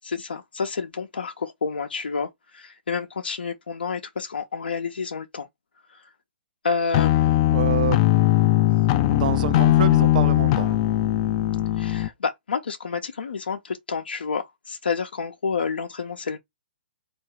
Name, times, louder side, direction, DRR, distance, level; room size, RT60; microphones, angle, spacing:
voice 1, 0.2-5.5 5.9-6.1 6.6-7.4 11.8-16.4, left 5 dB, 80° left, 0.7 m, -29 dB
sound 1, 6.9-12.1, left 15 dB, 35° left, 0.4 m, -20 dB
voice 2, 7.5-8.0 9.1-10.8, right 11 dB, 55° right, 0.4 m, -27 dB
3.6 x 2.7 x 4.6 m
hypercardioid pair, 135°, 5 cm